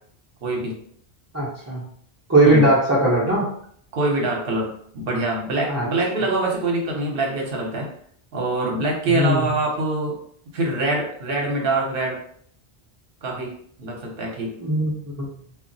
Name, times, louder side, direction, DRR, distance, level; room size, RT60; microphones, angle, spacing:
voice 1, 0.4-0.8 2.4-2.7 3.9-7.9 8.3-10.2 10.5-12.2 13.2-13.5 13.8-14.6, right 2 dB, 65° right, 0 dB, 1.0 m, -24 dB
voice 2, 1.3-1.8 2.3-3.4 5.7-5.9 9.0-9.5 14.6-15.3, right 1 dB, 20° right, -8 dB, 0.6 m, -19 dB
2.3 x 2.0 x 3.8 m, 0.63 s
omnidirectional pair, 1.0 m